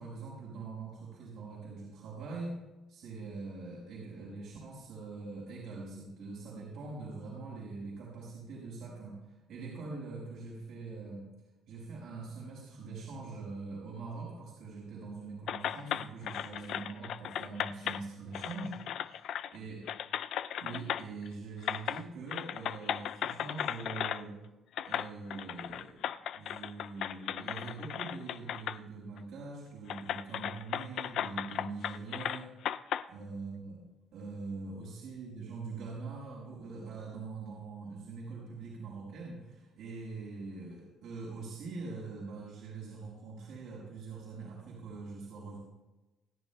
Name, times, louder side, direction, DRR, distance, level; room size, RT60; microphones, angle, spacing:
voice 1, 0.0-2.6 2.9-9.2 9.5-11.2 11.7-18.8 19.1-19.2 19.5-19.8 20.6-24.4 24.8-26.0 26.3-32.5 33.1-33.8 34.1-45.6, right 3 dB, 70° right, -5 dB, 5.0 m, -43 dB
sound 1, 15.5-18.0 18.3-19.6 19.9-21.3 21.6-22.0 22.3-24.2 24.8-28.8 29.2-29.3 29.9-33.0, left 10 dB, 60° left, 0.3 m, -36 dB
27.5 x 11.0 x 2.3 m, 1.1 s
cardioid pair, 160°, 0 cm